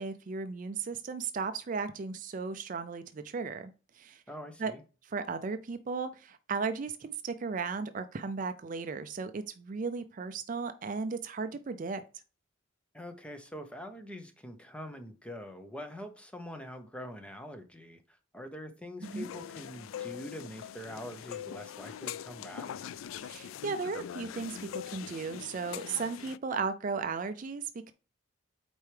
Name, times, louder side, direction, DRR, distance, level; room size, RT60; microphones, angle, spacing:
voice 1, 0.0-4.2 4.6-4.7 5.1-12.0 19.1-19.3 23.2-27.9, right 4 dB, 40° right, 0.4 m, -36 dB
voice 2, 4.3-4.8 12.9-22.7, equal, 5° left, 0.7 m, -44 dB
sound 1, 19.0-26.4, left 9 dB, 75° left, 0.3 m, -42 dB
8.1 x 4.5 x 3.3 m
head